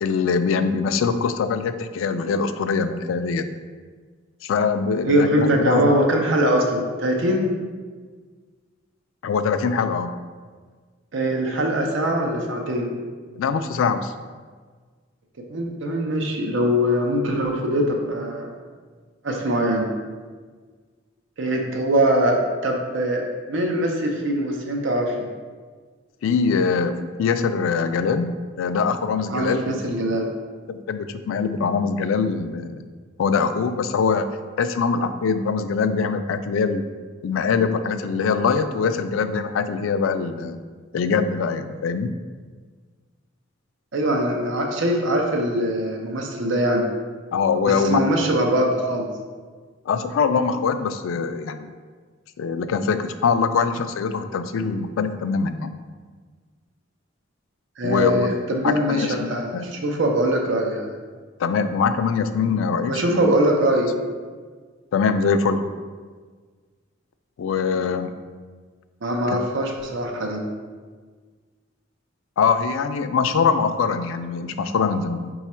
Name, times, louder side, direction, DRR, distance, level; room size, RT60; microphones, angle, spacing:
voice 1, 0.0-3.5 4.4-5.9 9.2-10.2 13.3-14.1 26.2-29.9 30.7-32.8 33.2-34.3 34.6-36.9 37.2-40.6 40.9-42.2 47.3-48.0 49.9-51.7 52.4-55.8 57.8-58.3 58.6-59.6 61.4-63.3 64.9-65.6 67.4-68.1 69.3-69.4 72.4-75.3, left 5 dB, 85° left, 10 dB, 0.3 m, -23 dB
voice 2, 5.1-7.5 11.1-12.9 15.5-18.5 19.2-19.9 21.4-25.3 29.3-30.3 43.9-46.9 47.6-49.1 57.8-60.9 62.8-63.9 69.0-70.4, right 1 dB, 70° right, 1 dB, 0.6 m, -22 dB
5.0 x 2.3 x 4.2 m, 1.5 s
head